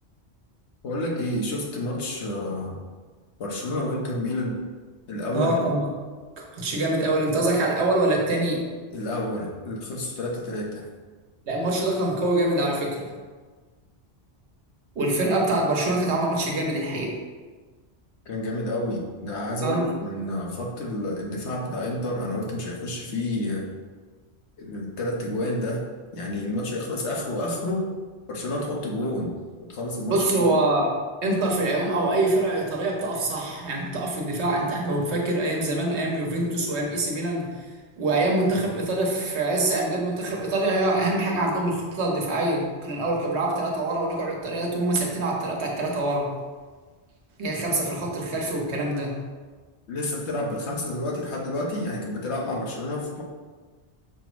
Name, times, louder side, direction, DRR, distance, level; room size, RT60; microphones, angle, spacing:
voice 1, 0.8-2.8 3.4-4.6 5.1-5.6 8.9-10.9 15.2-15.3 18.3-23.7 24.6-25.8 26.1-28.0 28.3-30.5 49.9-53.2, left 1 dB, 85° left, -1 dB, 1.1 m, -29 dB
voice 2, 5.3-5.9 6.4-8.7 11.5-13.1 14.9-17.2 19.6-19.9 30.1-31.0 31.2-46.3 47.4-49.2, right 2 dB, 85° right, 0 dB, 1.2 m, -25 dB
5.9 x 2.0 x 4.5 m, 1.4 s
omnidirectional pair, 1.1 m